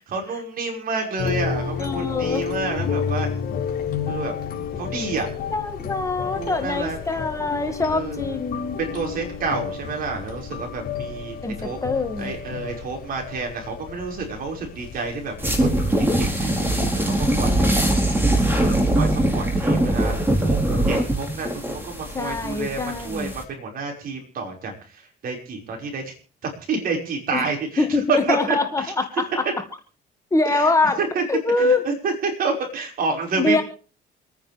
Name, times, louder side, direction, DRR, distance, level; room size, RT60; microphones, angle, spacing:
voice 1, 0.1-3.3 4.1-4.3 4.8-5.3 6.2-7.0 7.9-8.4 8.8-11.8 12.2-17.7 18.3-20.1 20.4-20.6 20.9-26.1 26.4-28.9 30.5-30.7 31.0-31.2 31.6-33.6, right 4 dB, 60° right, 2 dB, 5.7 m, -29 dB
sound 1, 1.2-18.2, left 6 dB, 60° left, 3.9 m, -31 dB
voice 2, 1.8-2.5 5.5-8.8 11.4-12.3 22.1-23.3 27.3-27.5 27.8-29.5 30.3-31.0 31.3-31.8 33.3-33.6, left 3 dB, 20° left, 6 dB, 2.1 m, -24 dB
sound 2, 15.4-23.4, right 1 dB, 10° right, 4.4 m, -22 dB
27.5 x 9.9 x 3.5 m, 0.37 s
cardioid pair, 110°, 17 cm